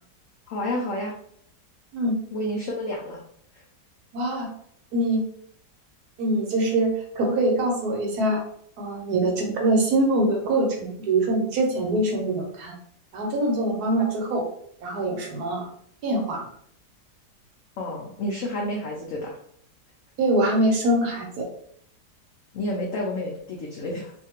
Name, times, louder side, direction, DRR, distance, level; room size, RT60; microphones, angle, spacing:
voice 1, 0.5-1.1 2.3-3.2 3.5-3.6 17.8-19.4 22.5-24.1, left 1 dB, 85° left, -1 dB, 0.7 m, -30 dB
voice 2, 4.1-4.5 4.9-5.2 6.2-8.4 8.8-12.7 13.1-14.4 14.8-15.7 16.0-16.4 20.2-21.4, right 1 dB, 70° right, 1 dB, 1.1 m, -23 dB
2.7 x 2.5 x 2.8 m, 0.66 s
omnidirectional pair, 1.9 m